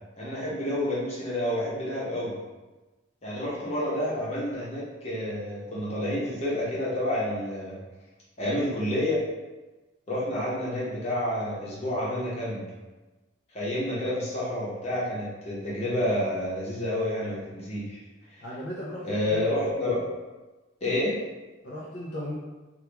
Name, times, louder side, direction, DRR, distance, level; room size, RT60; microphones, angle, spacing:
voice 1, 0.2-2.4 3.2-7.8 8.4-9.2 10.1-12.6 13.5-18.0 18.3-18.4 19.0-20.1 20.8-21.2, left 1 dB, 30° left, -7 dB, 1.0 m, -29 dB
voice 2, 18.4-19.5 21.6-22.3, equal, 60° left, -6 dB, 0.5 m, -36 dB
3.0 x 2.4 x 3.4 m, 1.2 s
head